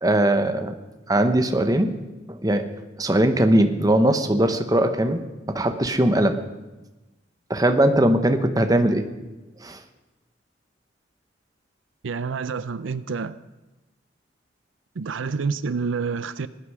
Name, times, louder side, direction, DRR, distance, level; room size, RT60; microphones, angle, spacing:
voice 1, 0.0-0.7 1.1-2.0 2.3-2.7 3.0-5.2 5.5-6.4 7.5-9.0 9.6-9.8, right 1 dB, 20° right, 1.0 m, -20 dB
voice 2, 12.0-13.4 15.0-16.5, right 5 dB, 85° right, 0.5 m, -28 dB
19.0 x 11.5 x 4.9 m
head